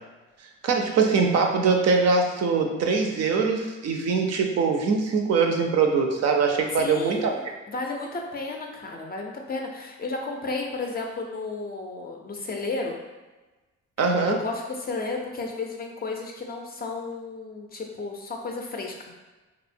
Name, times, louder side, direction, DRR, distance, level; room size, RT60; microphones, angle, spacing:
voice 1, 0.6-7.3 14.0-14.4, right 4 dB, 55° right, 3 dB, 0.5 m, -22 dB
voice 2, 6.8-13.0 14.2-19.2, left 3 dB, 30° left, 1 dB, 0.4 m, -33 dB
2.9 x 2.0 x 2.5 m, 1.2 s
cardioid pair, 90°, 30 cm